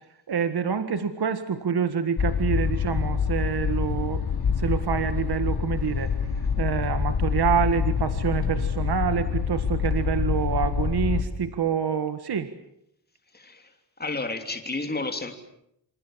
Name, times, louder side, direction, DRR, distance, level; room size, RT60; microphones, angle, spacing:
voice 1, 0.3-4.2 4.6-6.1 6.6-12.5, right 7 dB, 60° right, 10 dB, 1.8 m, -27 dB
sound 1, 2.2-11.2, left 6 dB, 55° left, 3.8 m, -26 dB
voice 2, 13.3-13.7 14.0-15.3, left 3 dB, 20° left, 5 dB, 3.3 m, -31 dB
28.0 x 27.0 x 7.5 m, 0.77 s
wide cardioid pair, 165°, 44 cm